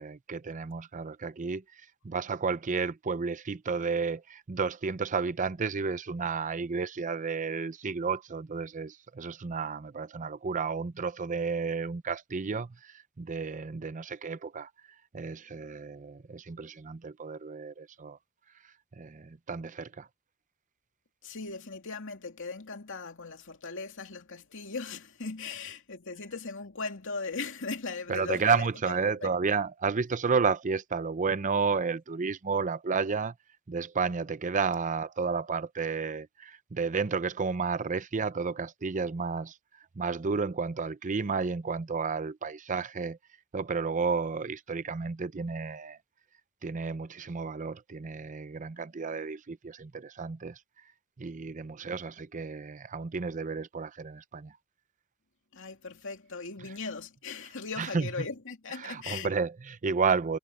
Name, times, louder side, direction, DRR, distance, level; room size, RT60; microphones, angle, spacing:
voice 1, 0.0-14.7 15.1-18.2 19.0-20.1 28.1-33.3 33.7-39.6 40.0-43.2 43.5-46.0 46.6-50.6 51.2-54.5 57.8-58.1 58.8-60.4, right 5 dB, 35° right, 0.5 m, -32 dB
voice 2, 21.2-28.7 29.2-29.3 55.5-59.3, left 4 dB, 60° left, 2.6 m, -38 dB
head